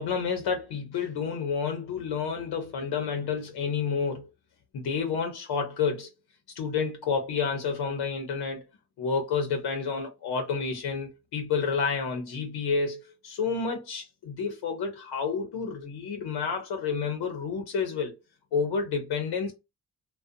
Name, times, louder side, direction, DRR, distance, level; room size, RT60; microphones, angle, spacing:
voice 1, 0.0-4.3 4.7-6.1 6.6-8.6 9.0-18.2 18.5-19.5, left 5 dB, 85° left, 0.7 m, -30 dB
2.5 x 2.1 x 2.5 m
cardioid pair, 85°, 38 cm